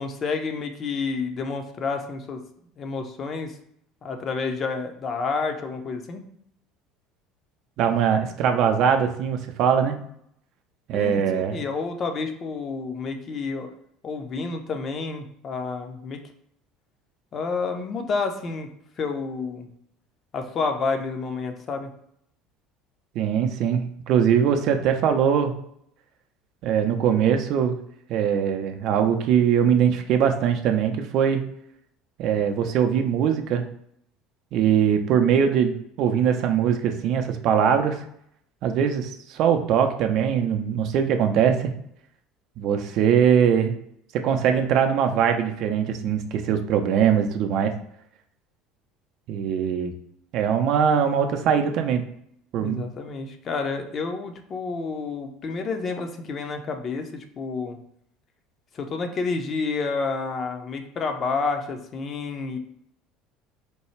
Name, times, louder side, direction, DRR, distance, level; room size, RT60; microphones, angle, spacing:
voice 1, 0.0-2.4 2.8-3.6 4.0-6.2 10.9-13.7 14.0-16.3 17.3-18.7 19.0-19.7 20.3-21.9 52.6-57.8 58.7-62.6, left 4 dB, 35° left, 5 dB, 0.6 m, -29 dB
voice 2, 7.8-10.0 10.9-11.6 23.1-25.5 26.6-27.8 28.1-31.4 32.2-33.6 34.5-38.0 38.6-41.7 42.6-43.8 44.1-47.7 49.3-49.9 50.3-52.0 52.5-52.9, right 8 dB, 50° right, 5 dB, 0.5 m, -21 dB
4.4 x 2.3 x 3.1 m, 0.72 s
figure-of-eight pair, 65°, 0 cm